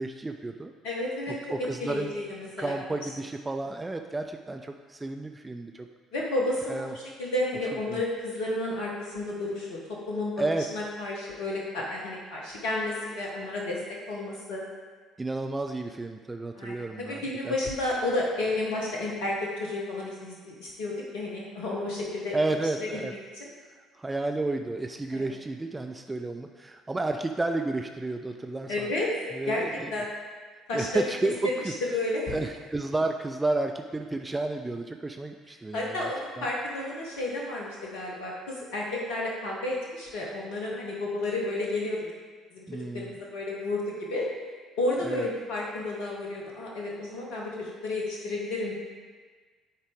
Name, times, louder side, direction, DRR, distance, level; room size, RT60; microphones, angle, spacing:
voice 1, 0.0-0.7 1.3-2.1 2.6-5.9 6.7-6.9 7.9-8.0 10.4-10.7 15.2-17.5 22.3-23.1 23.8-29.0 29.3-29.9 30.7-31.7 32.3-36.1 36.4-36.5 42.7-43.1 45.0-45.3, right 2 dB, 15° right, 5 dB, 0.4 m, -31 dB
voice 2, 0.8-1.3 1.8-3.0 6.1-9.8 10.1-10.3 10.7-13.8 14.1-14.6 16.5-22.4 22.9-23.5 25.1-25.3 28.7-29.1 29.5-30.1 30.7-31.0 31.9-32.3 35.7-42.1 42.5-42.6 42.9-44.3 44.8-48.8, left 2 dB, 65° left, -3 dB, 1.0 m, -31 dB
9.7 x 4.0 x 3.5 m, 1.5 s
figure-of-eight pair, 50°, 0 cm